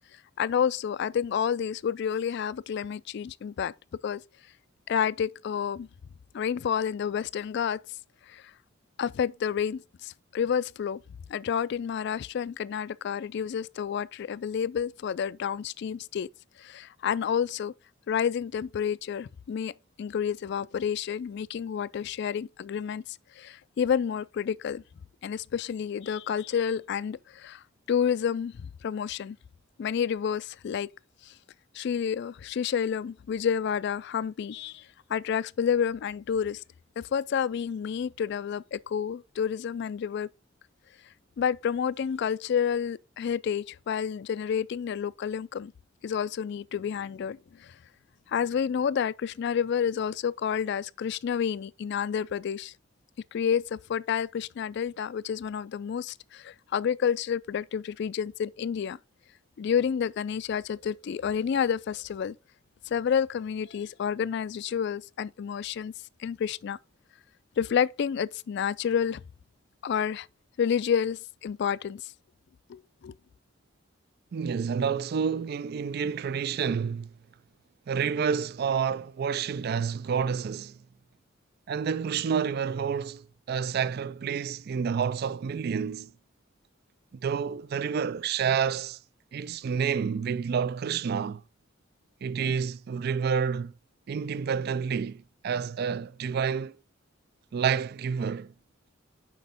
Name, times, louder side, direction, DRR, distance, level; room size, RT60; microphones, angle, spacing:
voice 1, 0.4-3.7 4.0-4.2 4.9-5.9 6.3-7.8 8.3-8.4 9.0-11.0 11.3-16.3 16.6-17.7 18.1-19.7 20.0-23.0 23.4-24.8 25.2-29.4 29.8-30.9 31.2-31.3 31.7-36.6 37.0-40.3 41.4-45.7 46.0-47.8 48.3-52.7 53.3-59.0 59.6-62.3 62.9-65.9 66.2-66.8 67.6-69.2 69.8-70.3 70.6-72.1 72.7-73.2, left 7 dB, 60° left, 0.3 m, -29 dB
voice 2, 74.3-77.1 77.9-80.8 81.7-86.1 87.2-89.0 89.3-91.4 92.2-93.7 94.1-96.8 97.5-98.5, right 6 dB, 50° right, 0.3 m, -29 dB
6.1 x 5.1 x 5.1 m
head